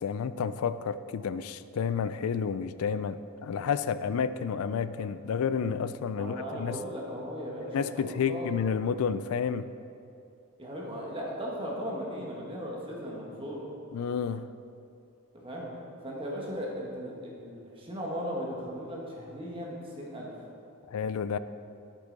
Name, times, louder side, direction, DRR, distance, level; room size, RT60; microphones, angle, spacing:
voice 1, 0.0-6.8 7.7-9.7 13.9-14.5 20.9-21.4, left 6 dB, 75° left, 14 dB, 0.3 m, -30 dB
voice 2, 6.2-8.5 10.6-13.7 15.3-15.7 16.0-20.3, equal, 25° right, -3 dB, 1.5 m, -37 dB
8.4 x 8.1 x 4.0 m, 2.5 s
head